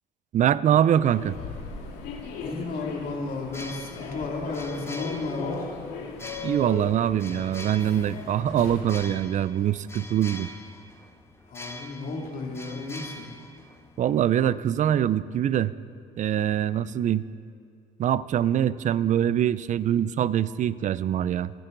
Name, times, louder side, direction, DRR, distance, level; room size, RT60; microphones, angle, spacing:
voice 1, 0.3-1.4 6.4-10.5 14.0-15.7 16.2-17.2 18.0-21.5, right 10 dB, 45° right, 17 dB, 0.5 m, -24 dB
Human voice / Subway metro underground, 1.0-9.0, left 4 dB, 85° left, 2.0 m, -38 dB
voice 2, 2.4-5.8 11.5-13.3, left 3 dB, 60° left, -1 dB, 2.7 m, -33 dB
sound 1, 3.4-14.2, left 1 dB, 15° left, 0.9 m, -44 dB
26.0 x 10.5 x 3.9 m, 2.3 s
cardioid pair, 110°, 17 cm